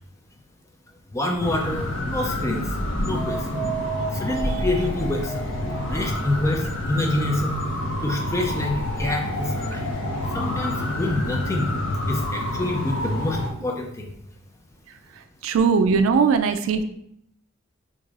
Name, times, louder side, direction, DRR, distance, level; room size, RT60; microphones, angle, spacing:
voice 1, 1.1-2.8 3.0-3.6 4.1-5.5 5.9-7.6 8.0-9.9 10.3-11.7 12.1-14.1, left 1 dB, 15° left, 1 dB, 0.4 m, -27 dB
sound 1, 1.3-9.1, right 2 dB, 45° right, 0.9 m, -32 dB
sound 2, 1.4-13.5, left 1 dB, 65° left, 0.6 m, -28 dB
voice 2, 15.4-16.8, right 5 dB, 75° right, 8 dB, 0.3 m, -19 dB
4.7 x 2.6 x 2.4 m, 0.74 s
head